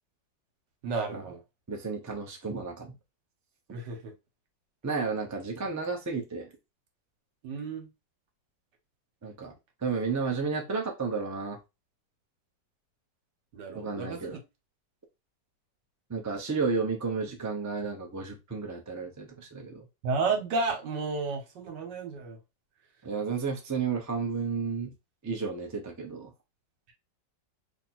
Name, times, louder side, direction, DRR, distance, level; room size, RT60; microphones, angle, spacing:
voice 1, 0.8-1.4 3.7-4.1 7.4-7.9 13.5-14.4 20.0-22.4, right 4 dB, 80° right, 1.6 m, -32 dB
voice 2, 1.7-3.0 4.8-6.5 9.2-9.5 9.8-11.6 13.7-14.4 16.1-19.8 23.0-24.9 25.2-26.3, right 5 dB, 20° right, 0.4 m, -32 dB
3.0 x 2.7 x 4.3 m
omnidirectional pair, 1.9 m